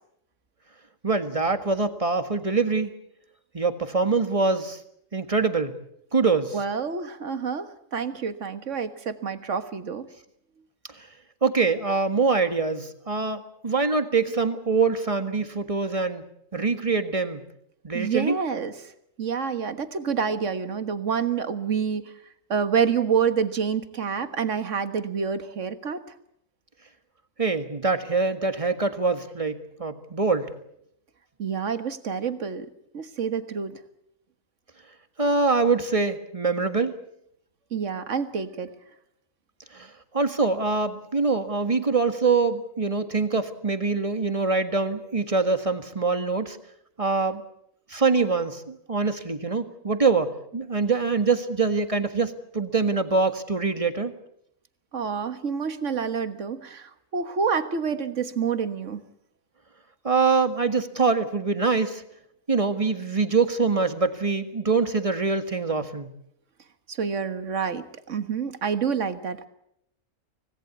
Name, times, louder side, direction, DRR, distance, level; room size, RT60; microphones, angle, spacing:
voice 1, 1.0-2.9 3.5-4.8 5.1-5.7 6.1-6.5 11.0-11.1 11.4-16.2 16.5-17.4 17.8-18.4 27.4-30.5 35.2-37.0 39.7-46.6 47.0-47.4 47.9-54.1 60.0-62.0 62.5-66.1, right 4 dB, 25° right, 8 dB, 1.7 m, -24 dB
voice 2, 6.5-10.1 17.9-18.9 19.2-22.1 22.5-26.0 31.4-32.7 32.9-33.8 37.7-38.7 54.9-59.0 66.9-69.5, right 6 dB, 65° right, 10 dB, 1.8 m, -28 dB
25.5 x 18.5 x 8.3 m, 0.75 s
omnidirectional pair, 1.4 m